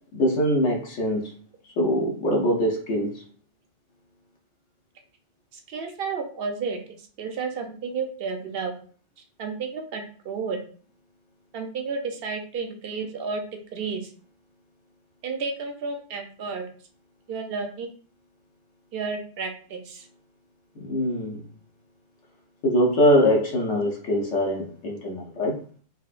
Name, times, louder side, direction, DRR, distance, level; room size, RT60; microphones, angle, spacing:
voice 1, 0.1-1.3 1.8-3.2 20.8-21.4 22.6-25.6, equal, 70° left, -2 dB, 1.1 m, -23 dB
voice 2, 5.5-6.8 7.2-8.7 9.4-10.6 11.5-13.4 13.7-14.1 15.2-16.7 17.3-17.9 18.9-20.1, right 5 dB, 60° right, 4 dB, 0.7 m, -31 dB
4.1 x 2.5 x 2.4 m, 0.44 s
omnidirectional pair, 1.4 m